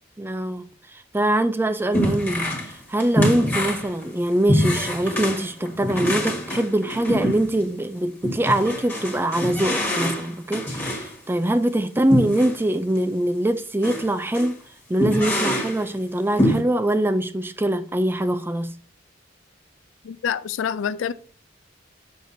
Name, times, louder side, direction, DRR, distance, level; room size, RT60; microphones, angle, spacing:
voice 1, 0.2-0.6 0.9-2.5 2.9-14.6 14.9-18.8, right 1 dB, 10° right, 0.4 m, -23 dB
sound 1, 1.9-2.7 3.0-7.7 8.2-11.1 12.1-12.6 12.9-13.0 13.8-14.1 14.3-14.5 15.0-15.8 16.4-16.6, equal, 10° left, 1.5 m, -25 dB
voice 2, 20.0-21.1, left 8 dB, 80° left, 0.4 m, -26 dB
6.5 x 5.9 x 2.7 m
head